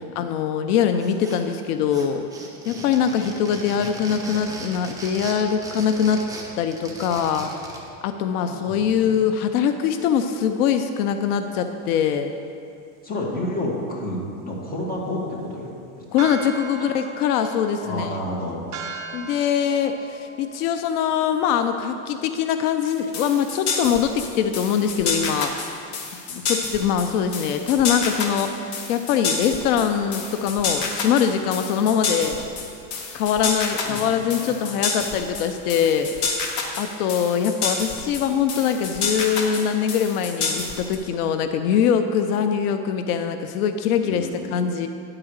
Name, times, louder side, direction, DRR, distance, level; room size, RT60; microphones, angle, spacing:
voice 1, 0.0-2.3 2.7-6.2 6.6-7.5 8.0-12.3 16.1-18.1 19.1-25.5 26.5-32.4 33.1-36.5 36.8-44.9, left 8 dB, 85° left, 8 dB, 0.7 m, -23 dB
sound 1, 1.0-1.6 1.9-7.9, right 2 dB, 10° right, 1.1 m, -38 dB
voice 2, 8.2-9.2 13.0-15.7 16.0-16.1 16.7-16.9 17.8-18.6 26.3-26.4 33.7-34.5 44.0-44.5, left 1 dB, 20° left, -3 dB, 1.8 m, -31 dB
sound 2, 16.2-22.6, right 5 dB, 40° right, 0.8 m, -39 dB
sound 3, 22.9-41.0, left 4 dB, 40° left, 1.3 m, -28 dB
9.9 x 4.8 x 6.4 m, 2.5 s
supercardioid pair, 130°, 44 cm